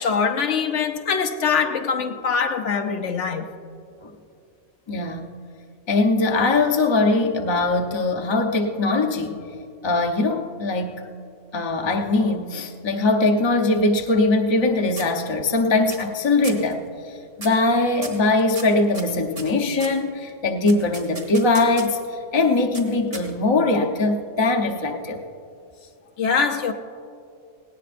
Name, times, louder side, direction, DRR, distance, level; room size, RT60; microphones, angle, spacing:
voice 1, 0.0-3.5 26.2-26.7, left 6 dB, 70° left, 1.0 m, -23 dB
voice 2, 4.9-5.3 5.9-9.4 9.8-11.0 11.5-22.0 22.3-25.2, left 2 dB, 25° left, 0.7 m, -21 dB
sound 1, 13.7-14.7 15.0-15.5 15.9-16.2 16.4-16.7 17.4-17.7 18.0-20.0 20.7-22.1 22.7-23.6, right 3 dB, 50° right, 1.7 m, -38 dB
19.0 x 18.0 x 2.5 m
omnidirectional pair, 1.3 m